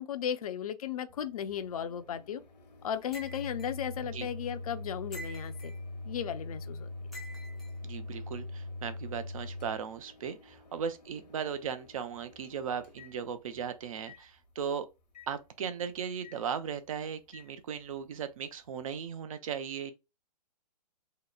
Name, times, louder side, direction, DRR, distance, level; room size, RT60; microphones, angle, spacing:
voice 1, 0.0-2.4 2.8-5.7 6.0-6.9, left 9 dB, 60° left, 0.5 m, -35 dB
Microwave oven, 1.1-13.6 14.1-14.2 15.1-15.3 16.2-16.4 17.3-17.5, left 2 dB, 80° left, 0.9 m, -44 dB
sound 1, 3.1-3.7 5.1-5.8 7.1-7.7, right 1 dB, ahead, 0.4 m, -46 dB
voice 2, 7.8-14.9 15.3-19.9, right 7 dB, 55° right, 0.5 m, -37 dB
2.8 x 2.0 x 2.3 m
hypercardioid pair, 135°, 21 cm